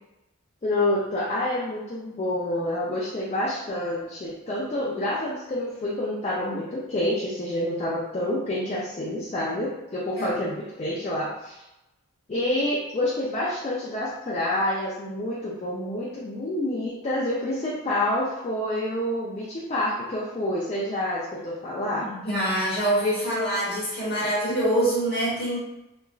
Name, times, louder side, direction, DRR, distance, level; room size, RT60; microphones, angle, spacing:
voice 1, 0.6-11.6 12.3-22.1, left 1 dB, 30° left, -6 dB, 0.3 m, -28 dB
voice 2, 22.0-25.6, right 1 dB, 45° left, -8 dB, 1.2 m, -25 dB
2.9 x 2.4 x 2.3 m, 0.95 s
head